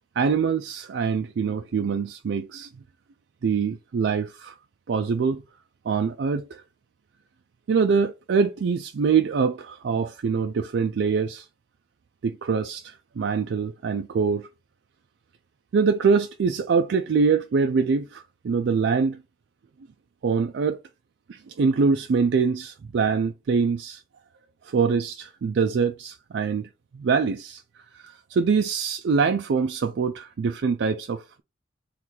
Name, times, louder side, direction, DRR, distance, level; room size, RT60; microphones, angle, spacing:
voice 1, 0.2-2.7 3.4-4.5 4.9-5.4 5.9-6.6 7.7-11.4 12.2-14.5 15.7-19.2 20.2-20.8 21.3-24.0 24.7-26.7 26.9-27.6 27.9-31.4, right 5 dB, 85° right, 0.4 m, -24 dB
3.2 x 3.0 x 3.8 m
head